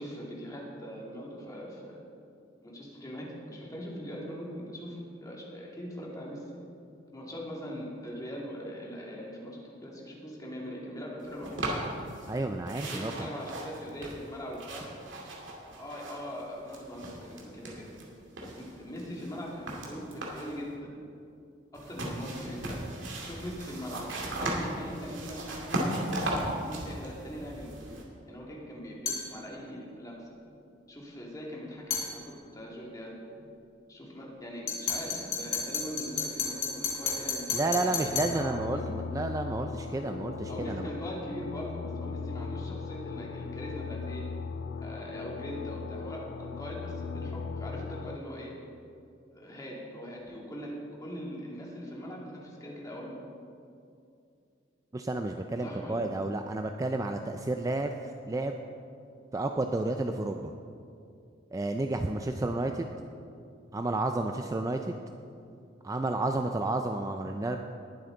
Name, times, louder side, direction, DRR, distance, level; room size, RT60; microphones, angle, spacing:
voice 1, 0.0-2.0 2.6-6.4 7.1-11.5 12.8-14.9 15.8-17.9 18.4-20.9 21.7-22.8 23.2-25.9 26.6-27.8 28.3-30.3 30.9-32.2 32.5-33.1 33.9-39.0 40.5-44.3 44.8-48.5 49.3-50.7 51.0-53.2 55.6-56.1, equal, 20° left, -3 dB, 2.2 m, -41 dB
sound 1, 11.4-12.4 12.6-16.4 16.7-18.0 18.4-20.6 21.7-28.0, right 1 dB, 85° right, 2.2 m, -36 dB
voice 2, 12.3-13.3 37.5-40.8 54.9-57.9 58.3-58.5 59.3-60.5 61.5-62.9 63.7-65.0 65.8-67.6, right 2 dB, 20° right, 5 dB, 0.4 m, -31 dB
sound 2, 29.0-29.3 31.9-32.1 34.7-38.4, left 5 dB, 40° left, 2.7 m, -32 dB
sound 3, 38.1-48.2, left 5 dB, 70° left, 0.4 m, -38 dB
20.0 x 7.9 x 3.9 m, 2.5 s
head